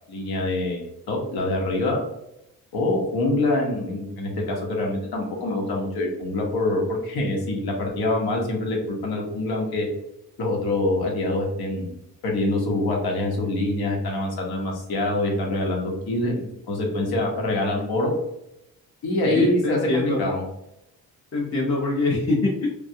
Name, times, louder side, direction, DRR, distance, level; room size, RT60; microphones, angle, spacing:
voice 1, 0.1-2.0 2.7-9.9 10.4-11.9 12.2-18.1 19.0-20.4, left 2 dB, 90° left, 0 dB, 1.0 m, -25 dB
voice 2, 19.2-20.3 21.3-22.7, left 2 dB, 40° left, -4 dB, 0.6 m, -23 dB
3.4 x 2.3 x 2.6 m, 0.83 s
cardioid pair, 120°, 36 cm